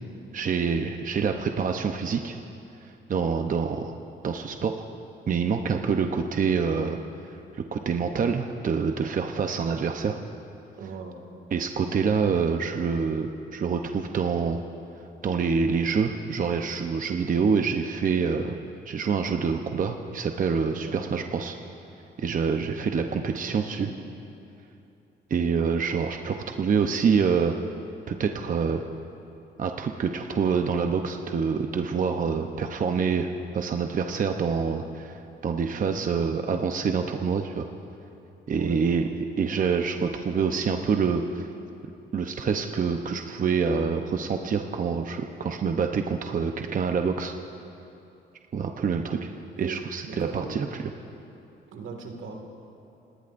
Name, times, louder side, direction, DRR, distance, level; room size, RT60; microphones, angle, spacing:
voice 1, 0.3-2.4 2.8-3.9 4.2-4.7 5.3-7.0 7.3-10.2 11.5-14.6 15.2-18.5 18.9-21.6 22.2-23.9 25.3-27.5 28.1-28.8 29.6-37.7 38.5-39.1 39.4-41.5 42.1-47.3 48.5-49.2 49.6-50.9, right 5 dB, 40° right, 4 dB, 0.8 m, -26 dB
voice 2, 10.8-11.2 20.8-21.2 23.8-23.9 38.6-38.8 48.8-49.0 49.6-49.8 50.1-50.6 51.7-52.3, right 5 dB, 75° right, 3 dB, 2.2 m, -38 dB
29.5 x 18.5 x 2.6 m, 2.8 s
cardioid pair, 90°, 20 cm